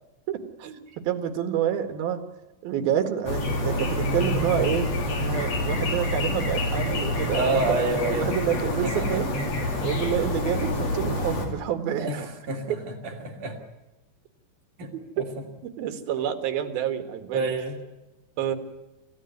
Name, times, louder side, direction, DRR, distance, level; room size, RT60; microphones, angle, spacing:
voice 1, 0.3-2.2 2.6-9.3 9.8-12.3 15.2-15.3 15.6-17.5 18.4-18.6, right 9 dB, 75° right, 8 dB, 3.5 m, -28 dB
sound 1, 3.3-11.5, left 1 dB, 45° left, 4.0 m, -27 dB
voice 2, 7.3-8.3 8.8-9.9 12.0-13.6 14.8-14.9 15.2-15.3 17.3-17.8, right 3 dB, 60° right, 3 dB, 3.9 m, -29 dB
26.5 x 15.0 x 9.5 m, 1.0 s
omnidirectional pair, 4.3 m